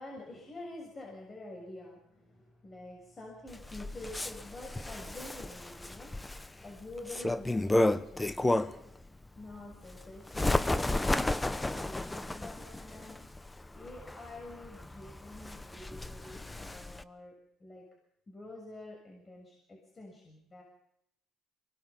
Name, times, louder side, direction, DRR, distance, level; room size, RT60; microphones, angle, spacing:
voice 1, 0.0-9.1 9.3-11.2 11.5-13.2 13.7-17.3 17.6-17.8 18.3-20.6, left 2 dB, 30° left, 0 dB, 6.7 m, -48 dB
Bird, 3.5-8.9 9.4-17.0, left 2 dB, 10° left, 1.0 m, -32 dB
23.5 x 19.0 x 7.3 m, 0.77 s
supercardioid pair, 80°, 0 cm